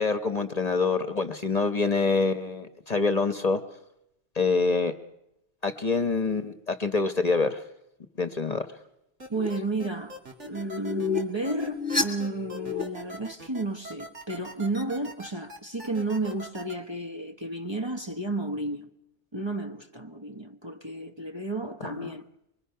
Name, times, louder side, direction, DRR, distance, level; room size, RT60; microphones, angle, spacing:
voice 1, 0.0-3.6 4.3-4.9 5.6-7.6 8.2-8.7 21.8-21.9, left 4 dB, 35° left, 1.1 m, -26 dB
sound 1, 9.2-16.7, right 1 dB, 90° right, 3.0 m, -42 dB
sound 2, 9.3-9.5 10.4-12.8, left 5 dB, 5° right, 2.8 m, -30 dB
voice 2, 9.3-10.2 10.4-18.9 19.3-22.2, right 2 dB, 25° right, 1.1 m, -32 dB
25.0 x 23.0 x 5.7 m
omnidirectional pair, 1.2 m